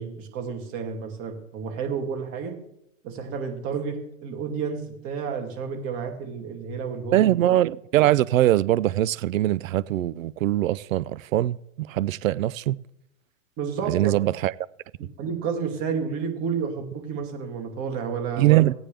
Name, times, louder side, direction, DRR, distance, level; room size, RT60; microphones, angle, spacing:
voice 1, 0.0-2.5 3.0-7.2 13.6-14.1 15.2-18.6, right 6 dB, 35° right, 2.5 m, -31 dB
voice 2, 7.1-12.8 13.9-14.5 18.4-18.7, right 14 dB, 85° right, 0.6 m, -22 dB
16.5 x 9.0 x 3.4 m
hypercardioid pair, 140°, 39 cm